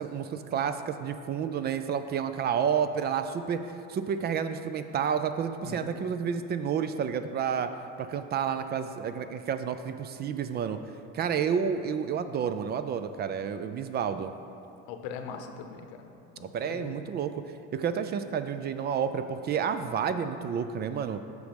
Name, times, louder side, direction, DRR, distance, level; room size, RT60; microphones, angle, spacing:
voice 1, 0.0-3.6 3.9-7.7 8.0-10.8 11.1-14.3 16.4-17.4 17.7-21.2, right 7 dB, 35° right, 10 dB, 0.4 m, -30 dB
voice 2, 5.6-5.9 14.9-16.1 16.4-17.0, left 6 dB, 85° left, 6 dB, 0.9 m, -41 dB
8.1 x 6.3 x 5.1 m, 2.6 s
cardioid pair, 125°, 29 cm